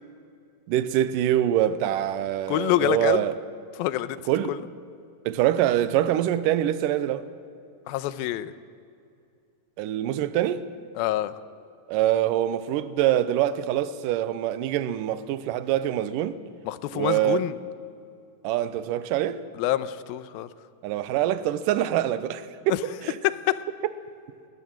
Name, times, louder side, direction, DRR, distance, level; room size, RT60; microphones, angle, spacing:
voice 1, 0.7-3.4 4.3-4.6 5.3-7.3 9.8-10.7 11.9-16.4 16.9-17.5 18.4-19.4 20.8-23.2, right 12 dB, 75° right, 2.3 m, -25 dB
voice 2, 2.5-3.2 3.8-4.2 4.5-4.6 7.9-8.5 11.0-11.3 16.7-17.5 19.6-20.5 22.7-22.8 23.2-23.6, left 14 dB, 85° left, 2.6 m, -26 dB
21.0 x 19.5 x 7.7 m
omnidirectional pair, 4.3 m